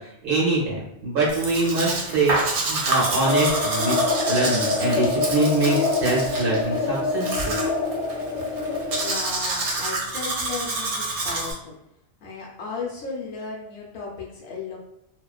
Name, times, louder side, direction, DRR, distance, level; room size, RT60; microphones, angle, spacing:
voice 1, 0.0-4.0 4.3-7.6, right 2 dB, 55° right, -5 dB, 1.1 m, -24 dB
Domestic sounds home sounds, 1.3-11.5, right 2 dB, 85° right, 0.9 m, -28 dB
sound 1, 3.2-9.1, left 3 dB, 45° left, 1.1 m, -25 dB
voice 2, 9.0-11.7 12.2-14.8, left 4 dB, 70° left, -3 dB, 0.9 m, -35 dB
2.4 x 2.2 x 2.3 m, 0.81 s
omnidirectional pair, 1.1 m